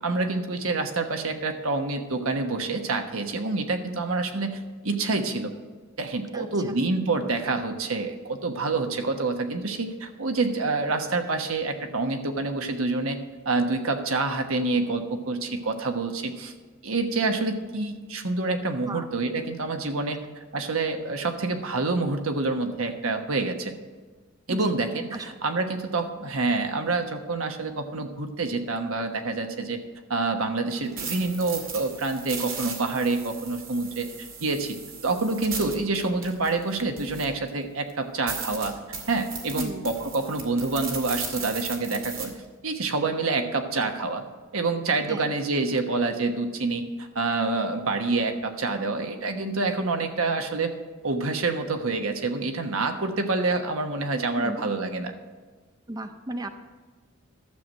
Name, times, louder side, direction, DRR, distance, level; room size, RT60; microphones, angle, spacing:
voice 1, 0.0-5.5 6.0-13.2 13.4-16.5 16.8-20.2 20.5-23.7 24.5-29.8 30.1-34.1 34.4-34.8 35.0-38.7 39.1-42.3 42.6-44.2 44.5-50.7 51.0-55.1, right 3 dB, 90° right, 6 dB, 1.2 m, -27 dB
voice 2, 6.3-6.8 18.8-19.0 24.5-24.7 25.1-25.3 39.5-39.9 45.1-45.3 54.3-54.6 55.9-56.6, right 1 dB, 20° right, 7 dB, 0.6 m, -34 dB
sound 1, 30.7-37.5 37.9-38.0 38.3-42.2, right 5 dB, 70° right, 2.3 m, -37 dB
12.0 x 7.7 x 5.4 m, 1.4 s
head